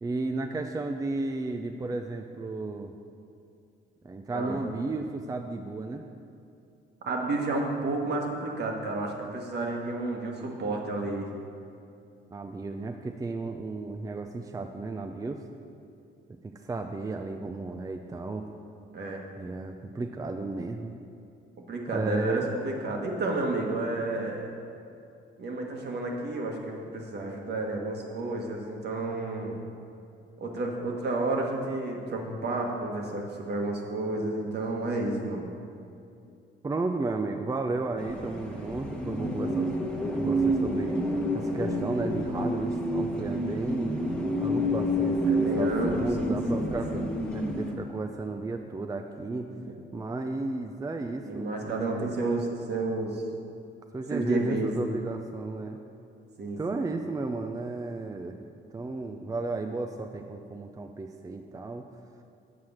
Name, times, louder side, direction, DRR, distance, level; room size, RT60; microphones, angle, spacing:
voice 1, 0.0-2.9 4.0-6.0 12.3-15.4 16.4-18.5 19.4-20.9 21.9-22.5 36.6-39.7 40.1-41.0 41.3-43.9 44.4-47.1 47.3-49.5 49.9-52.1 53.9-55.8 56.6-58.4 58.7-61.9, right 3 dB, 15° right, 5 dB, 0.4 m, -33 dB
voice 2, 7.0-11.3 18.9-19.2 21.6-24.5 25.4-29.6 30.4-35.5 45.3-47.1 49.6-49.7 51.3-53.2 54.1-54.7 56.4-56.6, right 2 dB, 55° right, 0 dB, 1.5 m, -31 dB
sound 1, 38.0-47.7, equal, 5° left, 1.2 m, -29 dB
7.7 x 4.8 x 7.2 m, 2.6 s
cardioid pair, 90°, 20 cm